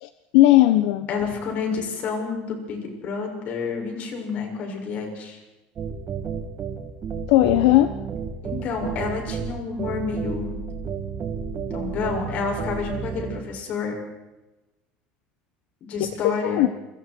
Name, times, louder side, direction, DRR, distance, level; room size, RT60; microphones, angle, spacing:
voice 1, 0.0-1.1 7.3-7.9 16.0-16.1 16.4-16.7, left 16 dB, 80° left, 9 dB, 1.2 m, -17 dB
voice 2, 1.1-5.4 8.4-10.6 11.7-14.0 15.8-16.7, left 5 dB, 45° left, 2 dB, 6.9 m, -29 dB
sound 1, 5.8-13.4, right 6 dB, 30° right, 2.9 m, -31 dB
29.0 x 25.5 x 4.7 m, 1.1 s
cardioid pair, 155°, 4 cm